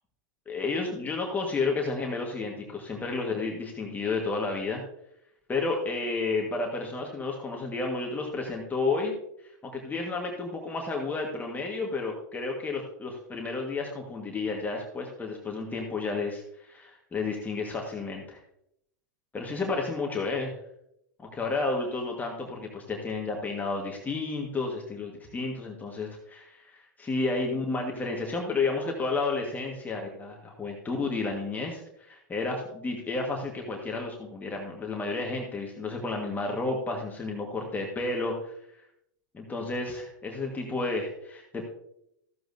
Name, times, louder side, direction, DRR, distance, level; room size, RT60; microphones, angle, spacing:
voice 1, 0.5-4.8 5.5-9.1 9.6-18.4 19.3-20.5 21.2-38.5 39.3-41.7, left 3 dB, 15° left, 0 dB, 1.5 m, -31 dB
14.0 x 7.7 x 2.7 m, 0.75 s
hypercardioid pair, 115°, 10 cm